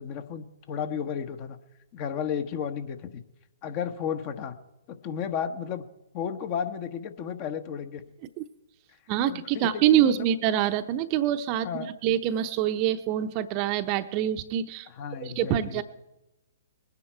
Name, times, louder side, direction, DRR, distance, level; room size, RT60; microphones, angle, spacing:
voice 1, 0.0-1.6 1.9-3.2 3.6-4.5 4.9-5.8 6.1-8.0 9.2-10.2 11.6-11.9 14.9-15.8, left 8 dB, 35° left, 9 dB, 1.1 m, -33 dB
voice 2, 9.1-11.7 12.0-14.9 15.2-15.8, right 11 dB, 35° right, 9 dB, 0.8 m, -25 dB
21.0 x 9.7 x 4.5 m, 0.96 s
figure-of-eight pair, 125°, 0 cm